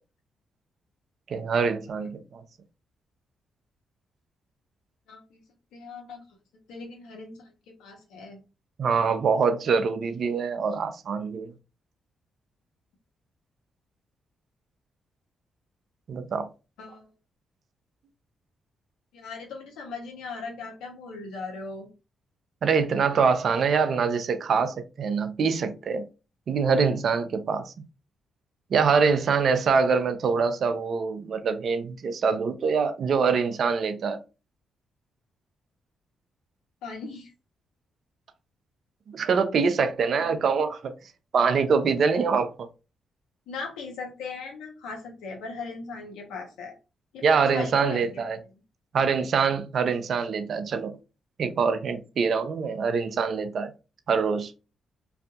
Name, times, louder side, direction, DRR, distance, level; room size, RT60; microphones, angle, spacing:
voice 1, 1.3-2.4 8.8-11.5 16.1-16.5 22.6-26.0 26.5-27.7 28.7-34.2 39.1-40.9 41.3-42.5 47.2-48.4 48.9-51.0 51.4-53.7 54.1-54.5, right 5 dB, 60° right, 0.5 m, -24 dB
voice 2, 5.1-5.4 5.7-6.2 6.5-8.4 16.8-17.1 19.1-21.9 23.1-23.3 36.8-37.3 40.1-40.3 43.5-46.7 47.1-48.2, left 4 dB, 80° left, 0.9 m, -38 dB
2.6 x 2.4 x 2.3 m
supercardioid pair, 50°, 0 cm